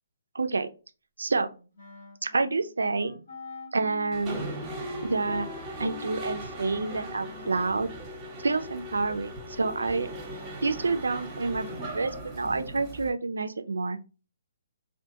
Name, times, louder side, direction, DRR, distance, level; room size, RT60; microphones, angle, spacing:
voice 1, 0.3-0.7 1.2-1.5 2.3-3.2 3.7-4.4 5.0-5.5 5.8-7.9 8.4-9.3 9.6-10.1 10.6-14.0, right 3 dB, 75° right, 8 dB, 0.3 m, -28 dB
Wind instrument woodwind instrument, 1.3-8.7, left 2 dB, 65° left, 1.0 m, -45 dB
Mechanisms, 4.1-13.1, right 1 dB, 20° right, 0.8 m, -39 dB
sound 1, 4.9-11.0, right 2 dB, ahead, 0.4 m, -50 dB
2.5 x 2.3 x 2.6 m, 0.33 s
figure-of-eight pair, 135°, 0 cm